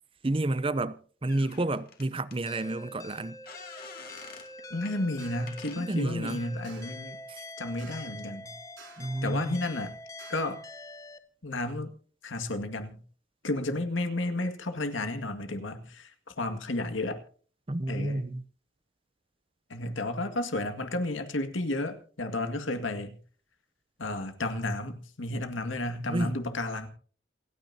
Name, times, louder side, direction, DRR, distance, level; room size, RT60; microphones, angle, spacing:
voice 1, 0.2-3.4 5.8-6.4 7.3-7.4 9.0-9.6 17.7-18.4 26.1-26.4, right 2 dB, 30° right, 0.6 m, -30 dB
sound 1, 1.3-2.4 3.4-4.5 4.8-5.0 5.5-5.8, left 5 dB, 50° left, 2.6 m, -47 dB
sound 2, 2.5-11.2, left 1 dB, 15° left, 0.8 m, -45 dB
sound 3, 4.2-4.5 5.2-5.6 6.6-7.1 7.8-8.2 8.8-9.2 10.2-10.6, right 5 dB, 75° right, 5.6 m, -53 dB
voice 2, 4.7-7.2 7.6-8.6 9.2-9.9 10.3-10.6 11.4-11.9 12.2-13.0 13.4-17.2 17.9-18.3 19.7-23.2 24.0-26.9, left 2 dB, 85° left, 2.0 m, -32 dB
28.0 x 9.6 x 2.8 m
head